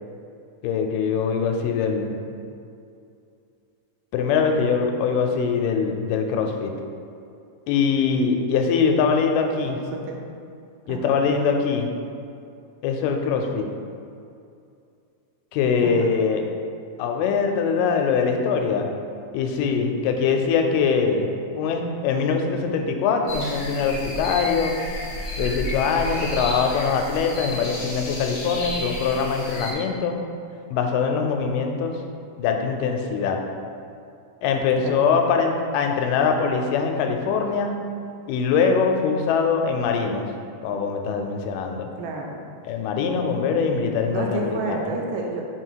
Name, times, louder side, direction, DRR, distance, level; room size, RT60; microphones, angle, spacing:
voice 1, 0.6-2.2 4.1-6.7 7.7-9.8 10.9-11.9 12.8-13.7 15.5-16.4 17.0-18.9 19.3-24.7 25.4-30.2 30.7-32.0 32.4-33.4 34.4-37.7 38.3-40.3 40.6-41.9 42.7-44.8, left 5 dB, 90° left, 4 dB, 2.2 m, -23 dB
voice 2, 9.6-10.2 10.9-11.2 15.8-16.1 34.8-35.0 42.0-42.4 44.1-45.5, right 3 dB, 85° right, 1 dB, 2.3 m, -30 dB
sound 1, 23.3-29.7, equal, 60° left, 1.2 m, -32 dB
5.1 x 4.0 x 4.6 m, 2.5 s
omnidirectional pair, 3.8 m